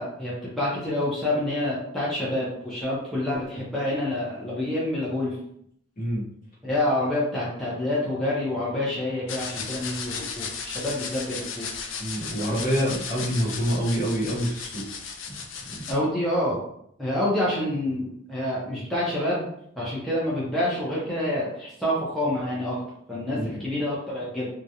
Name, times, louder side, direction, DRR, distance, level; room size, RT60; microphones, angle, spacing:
voice 1, 0.0-5.4 6.6-11.7 15.9-16.6 17.0-19.4 19.8-22.8 23.1-24.5, left 1 dB, ahead, -8 dB, 0.6 m, -27 dB
sound 1, 9.3-15.9, left 5 dB, 80° left, 0.4 m, -35 dB
voice 2, 12.0-14.8 15.3-15.4 15.7-15.9 23.3-23.6, equal, 45° left, -5 dB, 1.0 m, -27 dB
2.4 x 2.1 x 2.7 m, 0.70 s
head